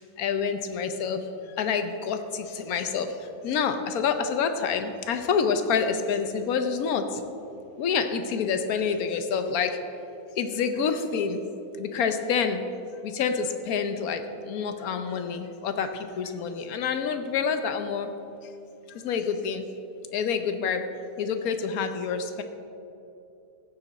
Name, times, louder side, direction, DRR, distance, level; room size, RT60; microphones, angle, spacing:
voice 1, 0.2-1.2 1.6-3.1 3.4-7.1 7.8-9.8 10.4-11.4 11.8-12.7 13.0-18.1 19.0-19.6 20.1-20.8 21.2-22.4, left 6 dB, 70° left, 8 dB, 1.2 m, -27 dB
15.0 x 6.8 x 4.2 m, 2.8 s
omnidirectional pair, 1.7 m